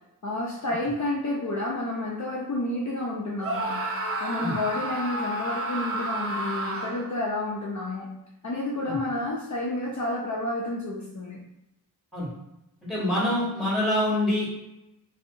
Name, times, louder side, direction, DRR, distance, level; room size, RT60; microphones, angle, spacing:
voice 1, 0.2-3.8 4.2-8.1 8.4-11.4, left 2 dB, 45° left, -3 dB, 0.5 m, -30 dB
Screaming, 3.4-7.2, right 1 dB, 35° right, 0.4 m, -31 dB
voice 2, 12.9-14.6, left 1 dB, ahead, -7 dB, 1.3 m, -25 dB
2.6 x 2.0 x 2.6 m, 0.88 s
cardioid pair, 45°, 40 cm